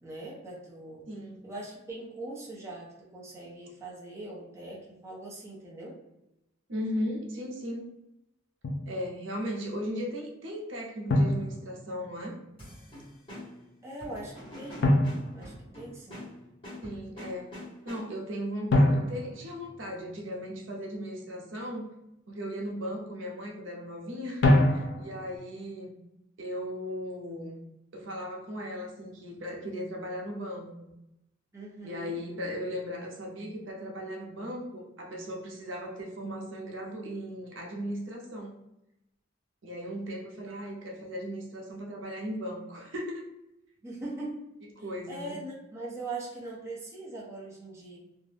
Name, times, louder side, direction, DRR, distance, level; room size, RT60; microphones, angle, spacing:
voice 1, 0.0-1.0 1.4-6.0 13.8-14.9 15.3-16.2 31.5-32.2 40.4-40.7 43.8-44.4 45.1-48.0, right 2 dB, 15° right, -5 dB, 0.6 m, -41 dB
voice 2, 1.1-1.5 6.7-7.9 8.9-12.4 16.8-21.9 22.3-25.9 26.4-27.6 27.9-30.9 31.8-38.6 39.6-43.3 44.8-45.4, equal, 75° right, -1 dB, 0.6 m, -37 dB
Drum, 8.6-8.9 11.1-12.2 14.8-16.2 18.7-20.4 24.4-25.4, left 1 dB, 60° left, 0.4 m, -26 dB
sound 1, 12.6-18.4, left 1 dB, 30° left, 1.2 m, -45 dB
2.4 x 2.1 x 3.2 m, 0.88 s
head